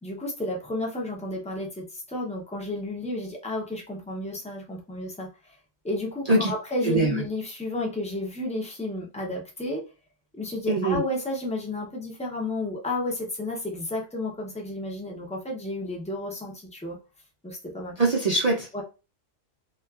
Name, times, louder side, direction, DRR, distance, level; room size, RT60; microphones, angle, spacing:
voice 1, 0.0-5.5 5.8-9.8 10.3-17.0 17.4-18.0 18.7-18.8, left 1 dB, 10° left, -1 dB, 0.3 m, -32 dB
voice 2, 6.8-7.2 10.7-11.0 18.0-18.7, right 2 dB, 65° right, -2 dB, 0.3 m, -22 dB
2.8 x 2.3 x 2.3 m, 0.30 s
omnidirectional pair, 1.4 m